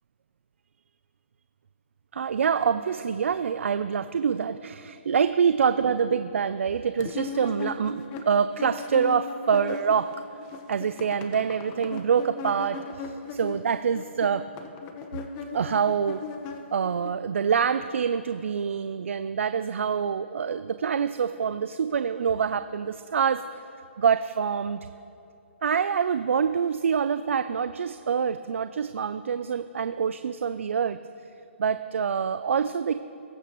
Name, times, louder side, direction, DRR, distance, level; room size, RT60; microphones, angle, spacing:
voice 1, 2.1-10.1 10.7-14.5 15.5-16.2 16.7-23.4 24.0-24.8 25.6-31.0 31.6-32.9, right 7 dB, 75° right, 12 dB, 0.4 m, -26 dB
sound 1, 7.0-10.2 10.4-17.1, left 5 dB, 25° left, 0.9 m, -38 dB
21.0 x 9.0 x 3.0 m, 2.7 s
hypercardioid pair, 155°, 7 cm